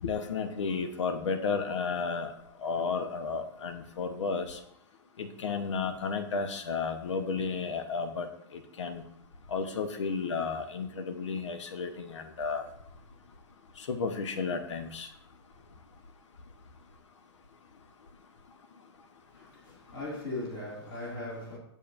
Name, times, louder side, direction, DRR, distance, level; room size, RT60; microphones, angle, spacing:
voice 1, 0.0-2.3 2.6-4.6 5.2-9.0 9.5-12.7 13.8-15.1, left 5 dB, 80° left, 0.9 m, -33 dB
voice 2, 19.2-21.6, left 2 dB, 50° left, 2.3 m, -39 dB
7.2 x 6.7 x 2.5 m
hypercardioid pair, 155°, 15 cm